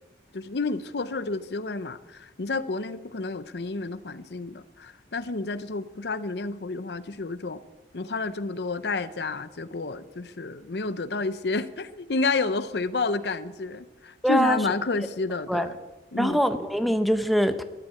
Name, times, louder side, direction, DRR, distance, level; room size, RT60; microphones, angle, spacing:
voice 1, 0.3-7.6 7.9-15.7 16.1-16.4, left 3 dB, 70° left, 13 dB, 0.7 m, -30 dB
voice 2, 14.2-14.6 15.5-15.7 16.2-17.6, equal, ahead, 8 dB, 0.7 m, -23 dB
13.5 x 12.0 x 8.4 m, 1.2 s
head